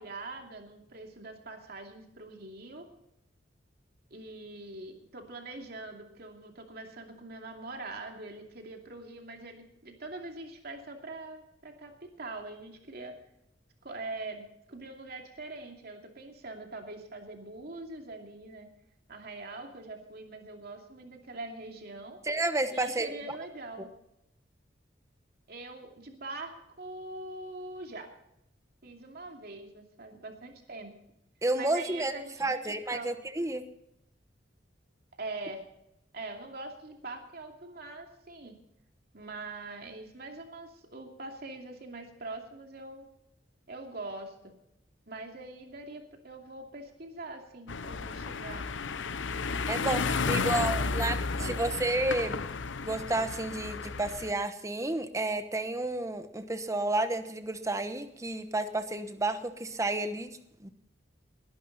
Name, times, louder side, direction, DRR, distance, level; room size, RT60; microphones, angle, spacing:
voice 1, 0.0-2.9 4.1-11.9 12.2-13.1 13.8-18.7 19.1-22.2 22.7-23.9 25.5-28.1 28.8-30.9 31.6-32.6 32.9-33.1 35.2-35.6 36.1-38.5 39.1-43.1 43.7-44.5 45.1-48.7 49.3-49.4 49.9-51.1 51.4-51.8, right 2 dB, 55° right, 3 dB, 2.6 m, -43 dB
voice 2, 22.2-23.4 23.8-23.9 31.4-32.1 32.4-33.7 49.7-50.0 50.3-52.4 52.8-60.7, right 2 dB, 15° right, 10 dB, 1.0 m, -31 dB
sound 1, 47.7-54.3, left 4 dB, 90° left, 0.8 m, -32 dB
20.0 x 11.5 x 4.1 m, 0.80 s
head